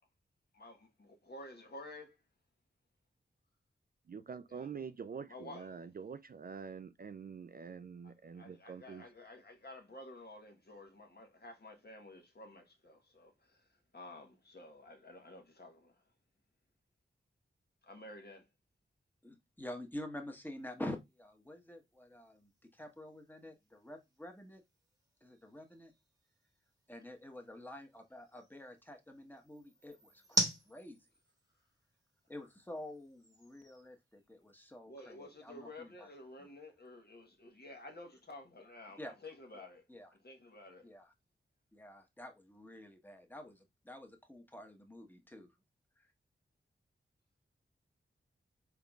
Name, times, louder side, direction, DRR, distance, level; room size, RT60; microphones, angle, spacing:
voice 1, 0.5-2.2 4.5-4.7 5.3-5.7 8.0-13.7 13.9-16.0 17.8-18.5 34.9-39.8 40.2-40.9, left 2 dB, 50° left, 1.2 m, -52 dB
voice 2, 4.1-9.0, right 6 dB, 45° right, 0.4 m, -46 dB
voice 3, 19.2-24.6 25.2-25.9 26.9-31.0 32.3-36.1 39.0-39.1 39.9-40.1 40.8-41.1 41.7-45.5 46.0-46.1, left 1 dB, 10° left, 1.1 m, -48 dB
sound 1, 20.6-34.8, right 1 dB, 20° right, 1.1 m, -45 dB
3.8 x 3.7 x 2.3 m
cardioid pair, 45°, 21 cm